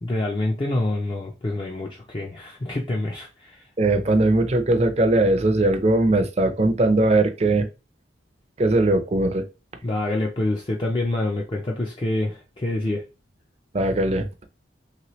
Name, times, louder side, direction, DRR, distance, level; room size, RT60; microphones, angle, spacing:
voice 1, 0.0-3.7 9.8-13.1, left 2 dB, 25° left, 0.4 m, -26 dB
voice 2, 3.8-7.7 8.6-9.4 13.7-14.4, right 2 dB, 35° right, 0.5 m, -20 dB
3.1 x 2.9 x 3.0 m
head